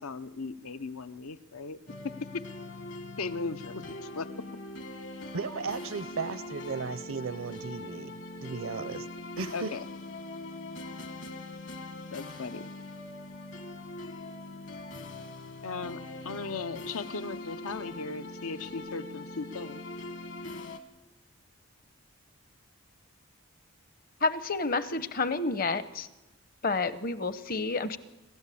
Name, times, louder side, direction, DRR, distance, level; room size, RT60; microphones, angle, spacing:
voice 1, 0.0-1.8 3.2-4.3 9.5-9.8 12.1-12.7 15.6-19.8, left 4 dB, 80° left, 12 dB, 0.8 m, -37 dB
sound 1, 1.9-20.8, left 2 dB, 60° left, 1.8 m, -42 dB
voice 2, 5.3-8.1 8.4-9.1 9.4-9.7, right 5 dB, 70° right, 14 dB, 0.6 m, -35 dB
voice 3, 24.2-26.1 26.6-28.0, left 3 dB, 40° left, 13 dB, 0.9 m, -29 dB
28.0 x 13.0 x 8.5 m, 1.1 s
head